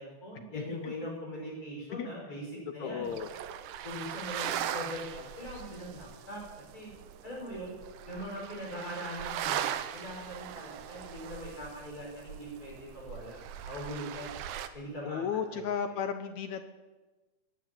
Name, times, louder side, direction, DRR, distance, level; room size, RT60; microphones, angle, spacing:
voice 1, 0.0-3.1 3.8-6.9 7.2-7.7 8.1-13.4 13.6-14.3 14.7-15.2 15.5-15.6 15.9-16.0, equal, 25° left, -3 dB, 6.7 m, -41 dB
voice 2, 0.5-0.9 1.9-2.1 2.8-3.3 15.0-16.7, left 7 dB, 70° left, 8 dB, 2.0 m, -34 dB
sound 1, 3.1-14.7, right 10 dB, 85° right, 2.4 m, -39 dB
19.5 x 9.3 x 7.5 m, 1.2 s
omnidirectional pair, 3.6 m